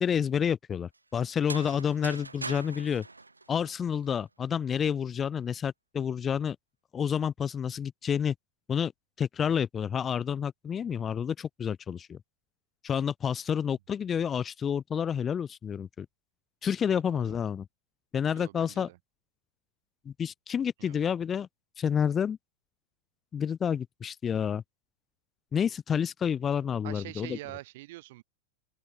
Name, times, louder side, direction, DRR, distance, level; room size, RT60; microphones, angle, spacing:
voice 1, 0.0-3.0 3.5-6.6 6.9-8.3 8.7-8.9 9.2-12.2 12.8-16.1 16.6-17.7 18.1-18.9 20.1-21.5 21.8-22.4 23.3-24.6 25.5-27.4, left 8 dB, 20° left, 0.5 m, -29 dB
sound 1, 1.3-4.2, right 3 dB, 80° right, 1.9 m, -41 dB
voice 2, 1.6-1.9 16.8-17.3 18.3-19.0 20.8-21.0 26.8-28.2, right 19 dB, 50° right, 1.8 m, -45 dB
open air
figure-of-eight pair, 90°, 0 cm